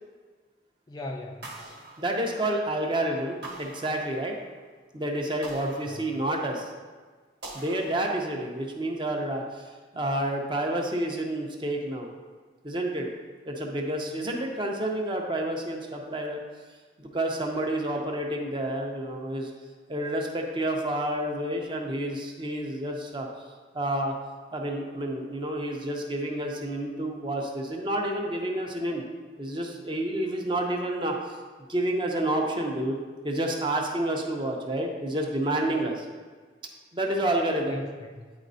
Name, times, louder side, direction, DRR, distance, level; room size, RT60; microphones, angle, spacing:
voice 1, 0.9-1.6 5.6-6.2 37.7-38.3, left 1 dB, 20° left, 1 dB, 0.3 m, -39 dB
sound 1, 1.4-2.8 3.4-4.6 5.4-6.7 7.4-8.6, right 2 dB, 65° right, 1.1 m, -45 dB
voice 2, 2.0-4.4 4.9-6.7 7.5-9.7 9.9-12.1 12.6-13.1 13.4-16.4 17.0-19.5 19.9-23.3 23.7-24.1 24.5-29.0 29.4-31.4 31.7-33.0 33.2-36.1 36.9-37.8, right 1 dB, 25° right, 1 dB, 0.7 m, -29 dB
9.6 x 4.1 x 2.7 m, 1.4 s
head